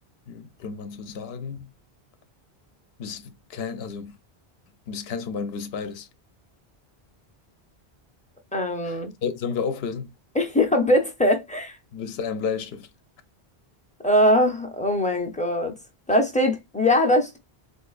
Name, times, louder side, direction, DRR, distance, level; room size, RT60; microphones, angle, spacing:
voice 1, 0.3-1.7 3.0-4.2 4.9-6.1 8.8-10.1 11.9-12.9, left 6 dB, 75° left, 0.8 m, -32 dB
voice 2, 8.5-9.1 10.3-11.8 14.0-15.7 16.1-17.4, left 1 dB, 10° left, 0.4 m, -21 dB
3.8 x 2.6 x 2.4 m
omnidirectional pair, 1.1 m